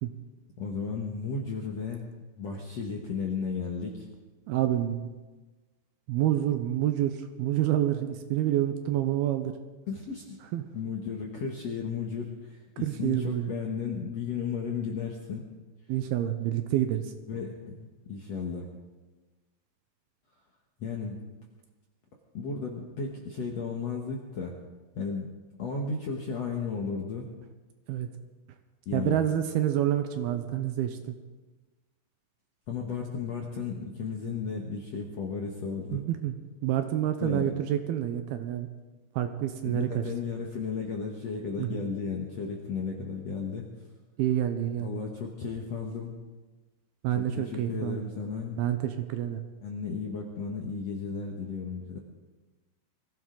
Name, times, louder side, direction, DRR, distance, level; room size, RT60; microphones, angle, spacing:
voice 1, 0.6-2.1 2.4-4.1 9.9-10.4 10.7-15.5 17.3-18.7 20.8-21.2 22.3-24.6 24.9-25.3 25.6-27.3 28.8-29.2 32.7-36.0 37.2-37.5 39.6-43.7 44.8-46.2 47.1-48.6 49.6-52.0, left 5 dB, 65° left, 0 dB, 1.7 m, -34 dB
voice 2, 4.5-5.1 6.1-9.5 10.5-10.7 12.8-13.5 15.9-17.1 27.9-28.1 28.9-31.2 35.9-36.4 36.6-38.7 39.2-40.0 41.6-41.8 44.2-44.9 47.0-48.0 48.6-49.4, right 12 dB, 80° right, 8 dB, 2.5 m, -28 dB
23.0 x 15.5 x 3.9 m, 1.2 s
omnidirectional pair, 4.9 m